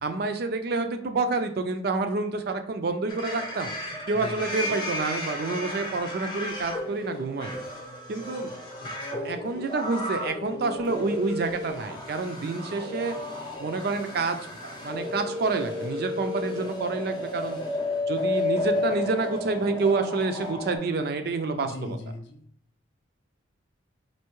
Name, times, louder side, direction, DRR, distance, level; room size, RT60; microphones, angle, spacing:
voice 1, 0.0-7.5 8.1-8.5 9.1-13.2 13.6-17.6 18.1-22.0, right 3 dB, 50° right, 7 dB, 0.4 m, -28 dB
sound 1, 3.1-20.8, left 2 dB, 20° left, 0.7 m, -33 dB
voice 2, 8.8-9.4 21.5-22.4, left 1 dB, 60° left, 5 dB, 0.5 m, -39 dB
4.5 x 2.7 x 3.0 m, 0.65 s
head